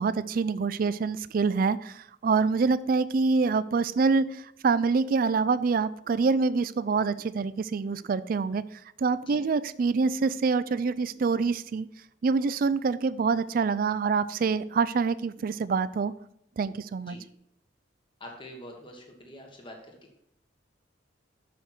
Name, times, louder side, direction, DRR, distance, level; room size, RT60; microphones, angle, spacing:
voice 1, 0.0-8.6 9.0-11.9 12.2-16.1 16.6-17.2, right 4 dB, 50° right, 16 dB, 0.3 m, -26 dB
voice 2, 18.2-19.8, left 1 dB, 25° left, 2 dB, 1.4 m, -45 dB
8.0 x 6.4 x 4.3 m, 0.75 s
head